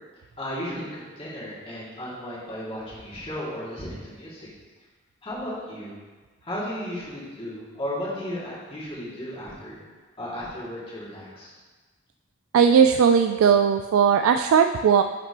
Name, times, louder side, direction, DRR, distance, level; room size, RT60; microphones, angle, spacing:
voice 1, 0.4-4.5 5.2-6.0 6.4-9.8 10.2-11.5, equal, 25° left, -7 dB, 2.3 m, -34 dB
voice 2, 12.5-15.0, right 7 dB, 80° right, 6 dB, 0.3 m, -18 dB
10.5 x 5.9 x 3.0 m, 1.4 s
head